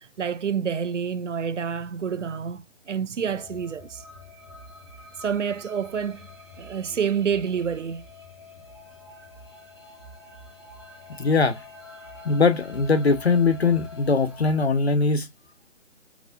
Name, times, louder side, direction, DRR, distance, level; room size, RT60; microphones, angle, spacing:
voice 1, 0.2-4.0 5.2-6.3 6.6-8.1, right 7 dB, 65° right, 0.5 m, -28 dB
sound 1, 3.3-14.6, left 2 dB, 20° left, 1.0 m, -46 dB
voice 2, 11.2-11.6 12.2-15.3, left 4 dB, 55° left, 0.8 m, -21 dB
4.7 x 2.0 x 3.9 m
hypercardioid pair, 180°, 39 cm